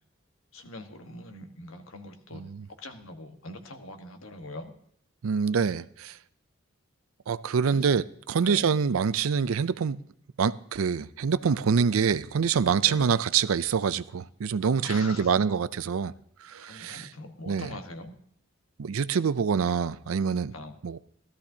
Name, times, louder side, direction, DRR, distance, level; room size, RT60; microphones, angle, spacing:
voice 1, 0.5-2.4 2.8-4.7 7.6-7.9 8.4-8.7 12.8-13.0 14.8-15.4 16.6-18.1 20.5-20.7, left 2 dB, 85° left, 1.4 m, -42 dB
voice 2, 2.3-2.7 5.2-6.2 7.3-10.0 10.4-16.1 16.4-17.1 17.5-17.7 18.8-20.5 20.8-21.0, right 6 dB, 85° right, 0.5 m, -26 dB
16.5 x 13.5 x 2.8 m
head